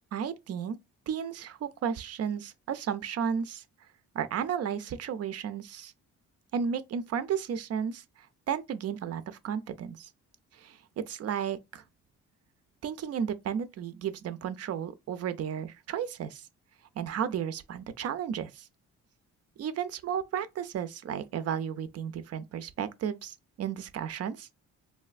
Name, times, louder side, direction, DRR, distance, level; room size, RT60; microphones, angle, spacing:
voice 1, 0.1-0.8 1.1-3.6 4.1-5.9 6.5-10.1 10.5-11.8 12.8-16.5 17.0-18.7 19.6-24.5, right 8 dB, 55° right, 0.5 m, -33 dB
3.2 x 2.6 x 2.4 m
cardioid pair, 90°, 30 cm